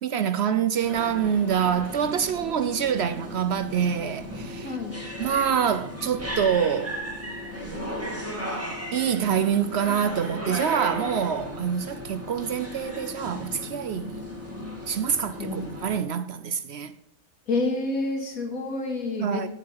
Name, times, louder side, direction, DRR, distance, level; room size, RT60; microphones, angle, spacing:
voice 1, 0.0-4.8 5.2-6.9 8.9-14.3 14.9-16.9 19.2-19.5, right 8 dB, 60° right, 0.7 m, -26 dB
sound 1, 0.8-16.0, equal, 10° right, 2.1 m, -36 dB
voice 2, 4.6-5.0 15.4-15.7 17.5-19.5, left 3 dB, 85° left, 2.5 m, -28 dB
15.5 x 5.5 x 5.6 m
omnidirectional pair, 1.4 m